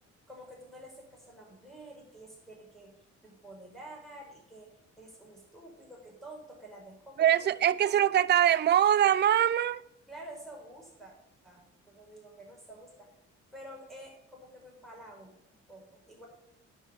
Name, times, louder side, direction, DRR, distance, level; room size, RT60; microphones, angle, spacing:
voice 1, 0.3-2.9 3.2-8.0 10.1-11.1 11.4-13.1 13.5-16.3, right 1 dB, ahead, 5.0 m, -49 dB
voice 2, 7.2-9.8, right 11 dB, 35° right, 0.4 m, -23 dB
9.9 x 6.4 x 6.9 m
cardioid pair, 90°, 30 cm